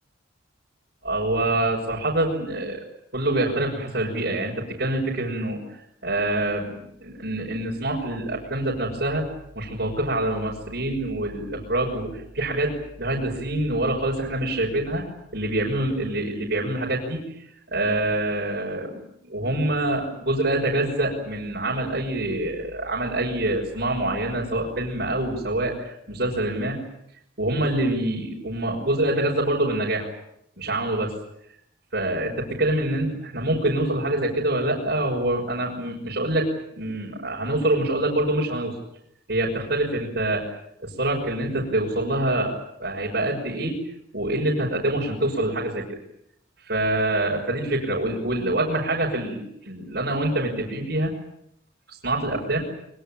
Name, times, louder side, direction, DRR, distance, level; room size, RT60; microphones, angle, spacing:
voice 1, 1.0-2.8 3.1-5.6 6.0-9.3 9.5-15.0 15.3-17.3 17.7-26.8 27.4-30.1 30.6-31.1 31.9-36.5 36.8-38.8 39.3-40.5 40.8-43.8 44.1-45.8 46.7-51.1 51.9-52.6, right 1 dB, 55° right, -4 dB, 6.2 m, -25 dB
24.5 x 24.0 x 9.0 m, 0.75 s
head